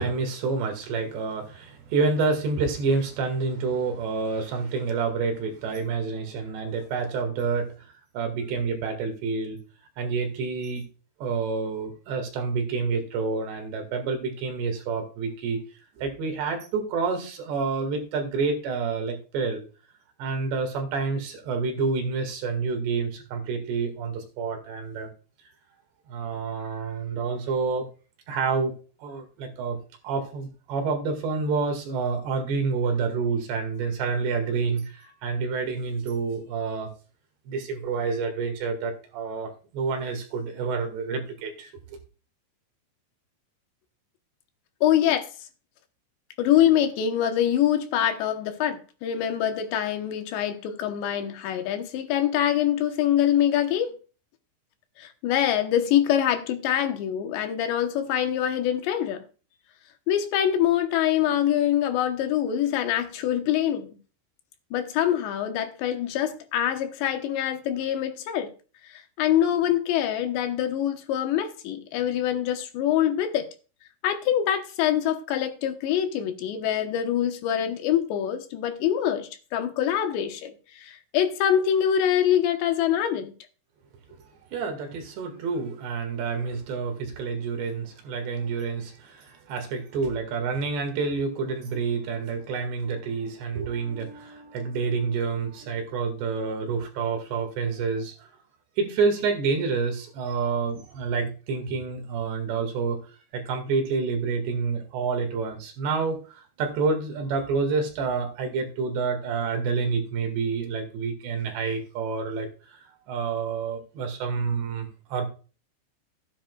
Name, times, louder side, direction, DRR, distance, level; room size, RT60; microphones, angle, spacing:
voice 1, 0.0-7.7 8.1-9.6 10.0-10.8 11.2-15.6 16.0-19.6 20.2-25.1 26.1-27.9 28.3-29.8 30.0-36.9 37.5-42.0 84.5-98.3 98.8-103.0 103.3-112.8 113.1-115.3, right 4 dB, 70° right, 4.0 m, -28 dB
voice 2, 44.8-45.3 46.4-53.9 55.0-59.2 60.1-64.0 64.7-68.5 68.8-73.5 74.0-83.3, left 10 dB, 75° left, 3.2 m, -24 dB
14.5 x 10.0 x 2.4 m
omnidirectional pair, 5.2 m